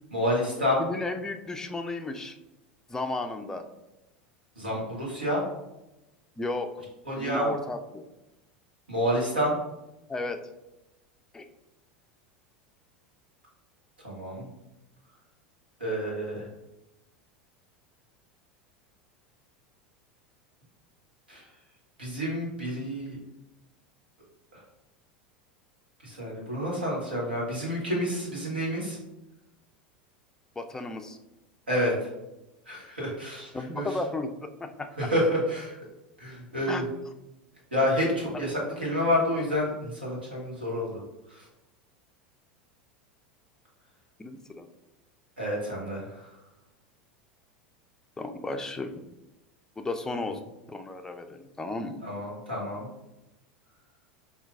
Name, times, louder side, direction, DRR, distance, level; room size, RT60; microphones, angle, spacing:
voice 1, 0.1-0.8 4.6-5.4 7.1-7.5 8.9-9.5 14.0-14.5 15.8-16.4 21.3-21.4 22.0-23.2 26.0-29.0 31.7-31.9 32.7-33.5 33.7-33.9 35.0-35.7 36.2-36.8 37.7-41.0 45.4-46.0 52.0-52.9, equal, 85° right, -4 dB, 1.2 m, -28 dB
voice 2, 0.8-2.4 2.9-3.6 6.4-6.7 7.1-8.1 10.1-10.4 11.3-11.5 30.6-31.2 33.5-34.9 36.7-36.9 38.3-38.5 44.2-44.7 48.2-49.1 49.8-50.4 50.7-52.0, left 2 dB, 10° left, 6 dB, 0.3 m, -34 dB
4.4 x 2.4 x 2.4 m, 0.97 s
figure-of-eight pair, 80°, 5 cm